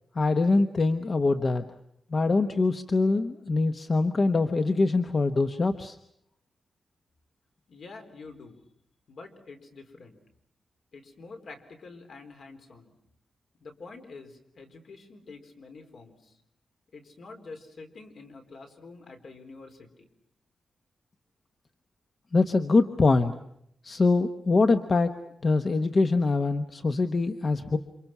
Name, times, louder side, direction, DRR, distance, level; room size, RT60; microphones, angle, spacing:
voice 1, 0.2-1.6 2.1-6.0 22.3-23.3 23.8-25.1 25.4-27.8, left 3 dB, 35° left, 8 dB, 1.0 m, -24 dB
voice 2, 7.7-8.6 9.1-10.2 10.9-12.9 13.6-16.4 16.9-20.1, left 3 dB, 60° left, 5 dB, 4.1 m, -47 dB
29.0 x 26.5 x 6.0 m, 0.75 s
wide cardioid pair, 150°, 0 cm